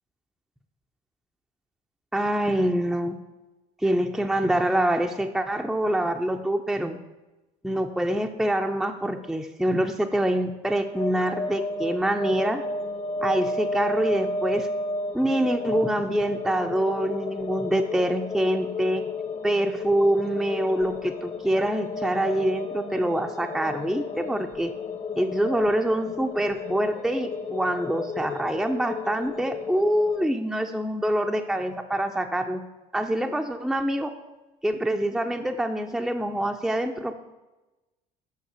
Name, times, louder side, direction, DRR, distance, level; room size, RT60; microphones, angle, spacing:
voice 1, 2.1-3.2 3.8-7.0 7.6-12.6 13.2-14.7 15.1-19.0 19.4-24.7 25.2-32.6 32.9-34.1 34.6-37.1, right 1 dB, ahead, 4 dB, 0.6 m, -25 dB
sound 1, 10.9-30.3, left 3 dB, 35° left, 1.0 m, -33 dB
5.9 x 5.7 x 5.8 m, 1.1 s
hypercardioid pair, 60°, 20 cm